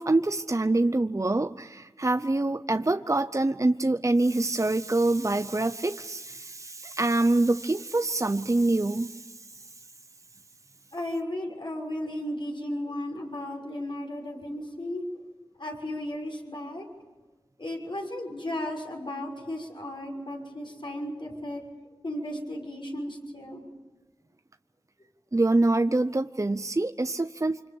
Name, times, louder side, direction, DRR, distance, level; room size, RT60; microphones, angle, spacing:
voice 1, 0.0-9.3 25.3-27.6, right 2 dB, 35° right, 9 dB, 0.7 m, -25 dB
voice 2, 10.9-15.0 15.6-16.8 17.6-21.6 22.0-23.6, left 1 dB, 55° left, 1 dB, 6.1 m, -35 dB
26.5 x 26.0 x 7.1 m, 1.2 s
wide cardioid pair, 40°, 10 cm